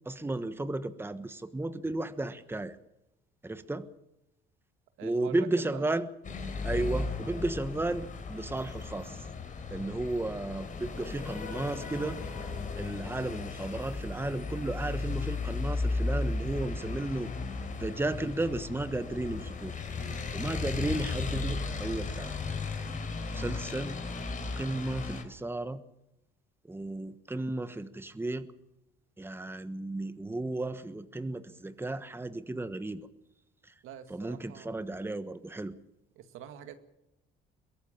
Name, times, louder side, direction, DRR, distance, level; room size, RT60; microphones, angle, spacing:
voice 1, 0.0-2.8 3.4-3.9 5.0-6.1 6.6-9.2 9.7-12.2 12.8-17.3 17.8-19.7 20.3-22.3 23.3-24.0 24.6-25.8 26.7-28.5 29.2-33.0 34.1-35.7, right 2 dB, 10° right, 11 dB, 1.3 m, -34 dB
voice 2, 5.0-5.9 20.0-20.2 33.8-34.7 36.1-36.8, right 9 dB, 75° right, 9 dB, 2.0 m, -45 dB
sound 1, 6.2-25.2, left 3 dB, 40° left, 3.8 m, -35 dB
22.5 x 16.5 x 7.3 m, 0.89 s
supercardioid pair, 85°, 21 cm